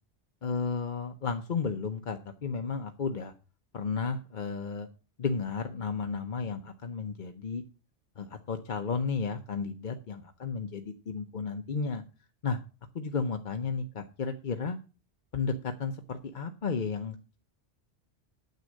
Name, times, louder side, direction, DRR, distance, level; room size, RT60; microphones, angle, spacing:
voice 1, 0.4-3.3 3.7-4.9 5.2-7.6 8.2-12.0 12.4-12.6 12.9-14.8 15.3-17.4, left 5 dB, 45° left, 6 dB, 0.8 m, -33 dB
9.5 x 7.5 x 6.3 m, 0.35 s
omnidirectional pair, 1.2 m